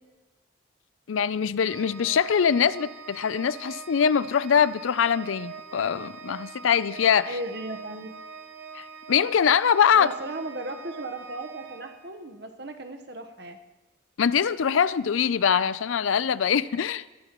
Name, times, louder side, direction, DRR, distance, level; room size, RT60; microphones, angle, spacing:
voice 1, 1.1-7.4 8.7-10.1 14.2-17.1, left 7 dB, 90° left, 0.5 m, -23 dB
Organ, 1.6-12.5, right 6 dB, 80° right, 1.2 m, -43 dB
voice 2, 7.2-8.1 9.9-13.6, right 2 dB, 55° right, 1.1 m, -36 dB
21.0 x 15.5 x 3.0 m
head